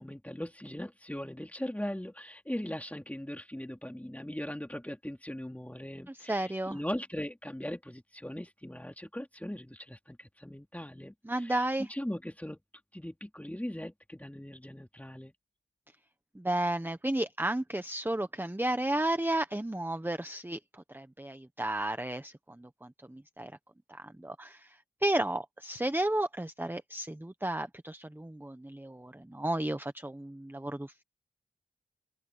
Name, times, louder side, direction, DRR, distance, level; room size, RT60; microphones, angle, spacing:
voice 1, 0.0-12.6 12.9-15.3, left 1 dB, 10° left, 2.6 m, -39 dB
voice 2, 6.3-6.8 11.2-11.9 16.3-23.5 23.9-31.0, right 1 dB, 10° right, 1.2 m, -33 dB
open air
wide cardioid pair, 60°, 19 cm